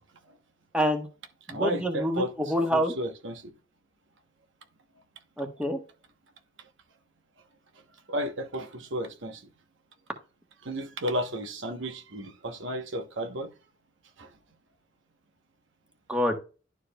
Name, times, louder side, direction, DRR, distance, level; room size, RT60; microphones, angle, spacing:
voice 1, 0.7-1.1 1.5-2.9 5.4-5.8 16.1-16.3, equal, 5° right, 1.2 m, -26 dB
voice 2, 1.5-2.3 2.7-3.5 8.1-9.4 10.6-13.5 14.2-14.3, equal, 65° right, 1.0 m, -33 dB
11.5 x 4.7 x 2.2 m
head